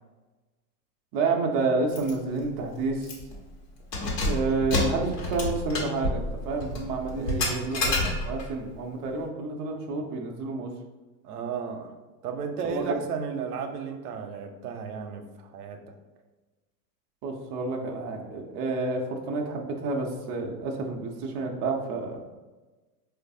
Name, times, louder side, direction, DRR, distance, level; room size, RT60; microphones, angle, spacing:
voice 1, 1.1-3.1 4.2-10.7 12.7-12.8 17.2-22.3, right 3 dB, 30° right, 1 dB, 0.3 m, -29 dB
Keys jangling, 1.9-2.1 2.5-2.6 3.0-3.4 3.8-8.5, left 2 dB, 70° left, 1.2 m, -29 dB
voice 2, 7.1-7.7 11.2-11.9 12.2-15.9, right 6 dB, 65° right, 5 dB, 0.6 m, -34 dB
4.4 x 2.4 x 2.6 m, 1.2 s
hypercardioid pair, 100°, 49 cm